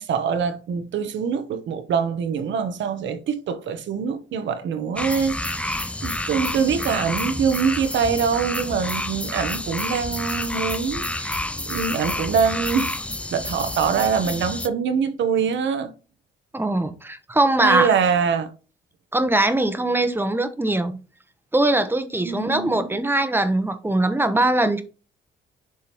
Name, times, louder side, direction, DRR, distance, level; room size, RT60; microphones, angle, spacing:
voice 1, 0.0-13.0 13.3-15.9 17.6-18.5 22.2-22.9, right 6 dB, 70° right, 1.0 m, -24 dB
sound 1, 5.0-14.7, left 1 dB, 5° left, 0.4 m, -29 dB
voice 2, 16.5-17.9 19.1-21.0 21.5-24.8, right 2 dB, 10° right, 1.0 m, -21 dB
11.0 x 3.7 x 3.0 m
cardioid pair, 90°, 20 cm